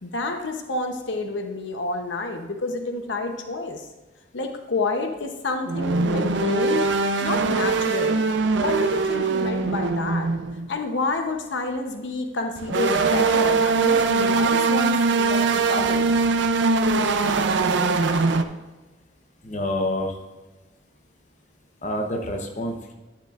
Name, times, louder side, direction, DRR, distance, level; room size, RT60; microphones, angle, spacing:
voice 1, 0.0-3.9 4.3-6.9 7.2-8.2 8.6-16.1, left 3 dB, 70° left, 5 dB, 0.8 m, -29 dB
sound 1, 5.7-10.8 12.6-18.4, right 4 dB, 65° right, 0.5 m, -22 dB
voice 2, 19.4-20.2 21.8-22.9, left 1 dB, 40° left, 2 dB, 0.9 m, -27 dB
10.0 x 9.7 x 2.4 m, 1.2 s
head